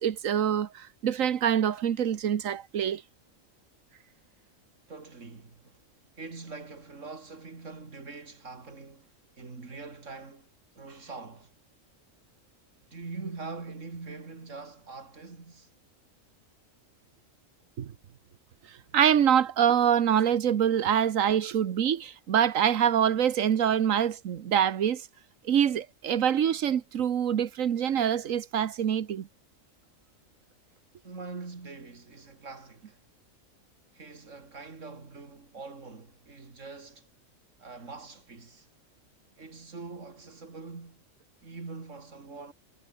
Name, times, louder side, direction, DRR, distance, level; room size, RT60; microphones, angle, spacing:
voice 1, 0.0-3.0 17.8-17.9 18.9-25.1 25.4-29.3, right 9 dB, 90° right, 1.4 m, -25 dB
voice 2, 4.9-5.8 6.2-9.1 9.3-10.5 10.8-11.5 12.9-15.7 31.0-33.0 33.9-37.1 37.6-38.7 39.4-41.0 41.4-42.5, right 4 dB, 70° right, 3.2 m, -43 dB
omnidirectional pair, 1.3 m